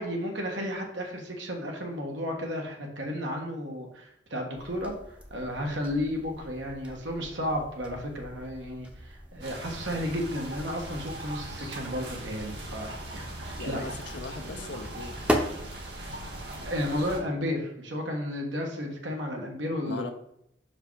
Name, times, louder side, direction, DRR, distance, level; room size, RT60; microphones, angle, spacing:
voice 1, 0.0-4.9 5.3-14.0 16.6-20.1, left 1 dB, 85° right, 1 dB, 1.4 m, -33 dB
sound 1, 4.5-17.2, equal, 5° right, 0.7 m, -38 dB
sound 2, 9.4-17.2, right 1 dB, 70° right, 1.8 m, -40 dB
voice 2, 13.5-15.2 19.8-20.1, left 3 dB, 80° left, 5 dB, 0.5 m, -39 dB
5.7 x 4.9 x 4.7 m, 0.76 s
head